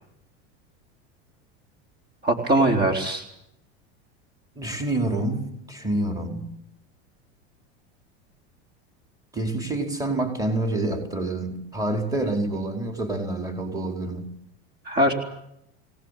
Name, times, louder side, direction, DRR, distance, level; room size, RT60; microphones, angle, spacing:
voice 1, 2.2-3.2 14.9-15.1, right 1 dB, 30° right, 3 dB, 4.1 m, -21 dB
voice 2, 4.5-6.5 9.3-14.3, right 2 dB, 10° right, 3 dB, 4.8 m, -27 dB
24.5 x 19.0 x 8.5 m, 0.79 s
supercardioid pair, 135°, 33 cm